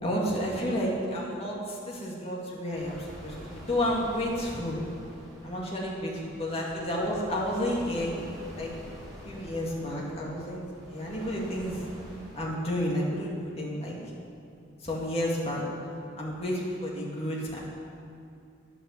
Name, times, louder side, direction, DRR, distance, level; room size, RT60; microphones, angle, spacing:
voice 1, 0.0-3.3 3.7-4.8 5.4-6.1 6.4-8.1 8.6-8.7 9.2-11.8 12.4-14.0 14.8-15.6 16.2-17.6, equal, 30° left, -4 dB, 2.5 m, -31 dB
sound 1, 2.7-12.5, equal, ahead, 3.8 m, -46 dB
10.5 x 9.0 x 7.4 m, 2.5 s
head